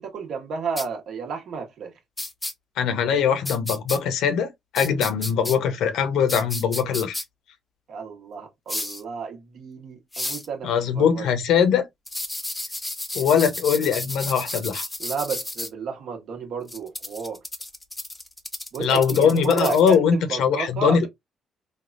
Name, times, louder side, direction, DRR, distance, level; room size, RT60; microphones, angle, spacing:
voice 1, 0.0-1.9 7.9-11.2 15.0-17.4 18.7-21.1, right 6 dB, 70° right, 1.0 m, -32 dB
sound 1, 0.8-0.9 2.2-2.5 3.4-4.0 4.7-5.6 6.3-7.2 8.7-9.0 10.1-10.5 12.1-15.7 16.7-20.0, left 1 dB, 10° left, 0.6 m, -32 dB
voice 2, 2.8-7.1 10.6-11.9 13.1-14.8 18.8-21.1, left 7 dB, 85° left, 0.7 m, -21 dB
3.4 x 2.2 x 2.4 m
cardioid pair, 90°, 0 cm